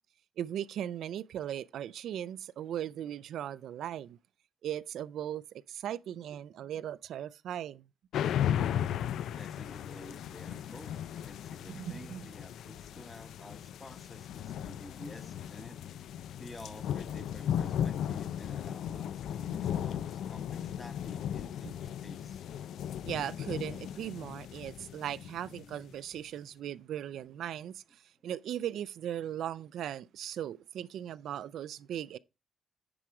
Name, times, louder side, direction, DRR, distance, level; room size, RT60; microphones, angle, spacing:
voice 1, 0.4-4.2 4.6-7.9 11.7-12.3 21.6-21.7 23.0-32.2, right 10 dB, 85° right, 0.4 m, -38 dB
sound 1, 8.1-25.9, left 10 dB, 85° left, 0.4 m, -36 dB
voice 2, 9.3-22.4 25.6-25.7, left 1 dB, 15° left, 1.2 m, -51 dB
10.0 x 4.9 x 4.6 m
wide cardioid pair, 160°, 0 cm